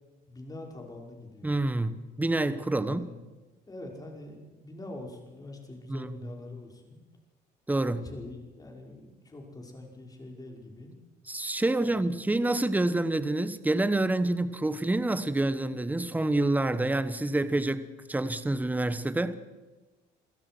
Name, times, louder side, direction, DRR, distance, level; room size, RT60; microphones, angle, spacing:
voice 1, 0.3-1.7 2.8-3.1 3.7-7.0 7.8-10.9 11.8-12.3, left 2 dB, 20° left, 5.6 m, -44 dB
voice 2, 1.4-3.1 5.9-6.1 7.7-8.0 11.3-19.3, right 2 dB, 10° right, 1.2 m, -27 dB
27.5 x 16.5 x 6.2 m
cardioid pair, 110°, 17 cm